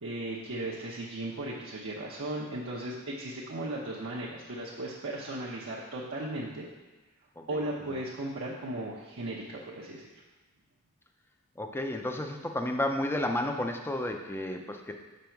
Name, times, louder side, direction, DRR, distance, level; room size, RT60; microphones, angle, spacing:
voice 1, 0.0-6.7 7.5-10.1, right 1 dB, 65° right, -6 dB, 0.9 m, -36 dB
voice 2, 11.6-14.9, left 1 dB, 10° left, 4 dB, 0.5 m, -32 dB
6.2 x 5.3 x 4.5 m, 1.2 s
head